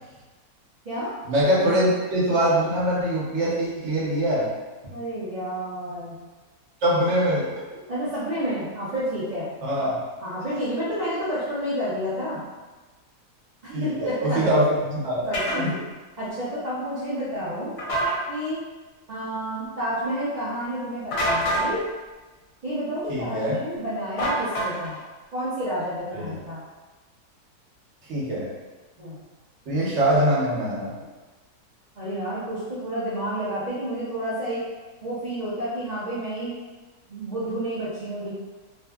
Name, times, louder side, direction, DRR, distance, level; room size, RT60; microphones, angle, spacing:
voice 1, 1.2-4.5 6.8-7.4 9.6-10.0 13.7-15.2 15.5-15.7 23.1-23.5 26.1-26.4 28.1-28.5 29.7-30.9, right 1 dB, 55° right, -6 dB, 0.9 m, -23 dB
voice 2, 4.9-6.2 7.9-9.5 10.2-12.4 13.8-14.5 15.2-15.7 16.2-17.7 18.3-18.6 19.1-21.8 22.6-25.0 25.3-26.6 29.0-29.2 32.0-34.6 35.0-36.5 37.1-38.3, equal, 80° right, -12 dB, 0.3 m, -30 dB
sound 1, 15.3-15.6 17.8-18.2 21.1-21.7 24.2-25.0, right 1 dB, 60° left, 0.8 m, -25 dB
2.6 x 2.5 x 2.2 m, 1.2 s
omnidirectional pair, 1.7 m